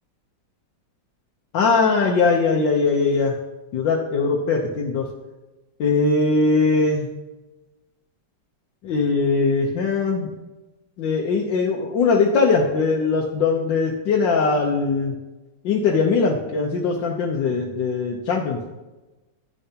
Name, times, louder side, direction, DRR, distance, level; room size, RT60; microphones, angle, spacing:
voice 1, 1.5-3.4 3.7-5.1 5.8-7.1 8.8-10.3 11.0-15.1 15.6-18.6, left 4 dB, 80° left, -1 dB, 1.5 m, -20 dB
10.0 x 10.0 x 2.8 m, 1.1 s
omnidirectional pair, 2.0 m